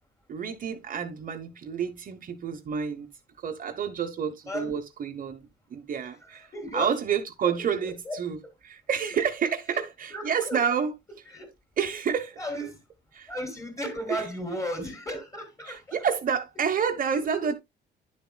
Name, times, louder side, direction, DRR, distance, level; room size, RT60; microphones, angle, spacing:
voice 1, 0.3-3.1 3.4-8.4 8.6-10.9 11.8-12.4 13.1-13.3 14.1-14.3 15.6-17.5, right 7 dB, 45° right, 1.0 m, -29 dB
voice 2, 6.2-6.9 7.4-7.5 7.8-8.2 9.7-9.8 10.1-10.6 11.3-11.5 12.4-12.8 13.3-16.0 17.4-17.5, equal, 15° left, 3.2 m, -35 dB
10.5 x 7.1 x 2.2 m
cardioid pair, 130°, 19 cm